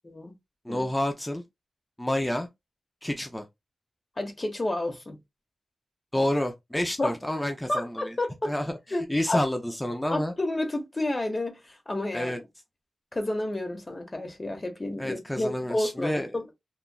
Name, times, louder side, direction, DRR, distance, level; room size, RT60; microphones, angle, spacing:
voice 1, 0.6-1.4 2.0-2.5 3.0-3.4 6.1-8.2 8.4-8.7 9.1-10.3 12.1-12.4 15.0-16.5, left 1 dB, 10° left, 0.5 m, -29 dB
voice 2, 4.2-5.2 7.0-7.1 7.7-8.5 8.9-9.4 10.1-12.3 13.1-16.5, left 1 dB, 30° left, 1.0 m, -30 dB
3.1 x 2.4 x 2.2 m
cardioid pair, 65°, 0 cm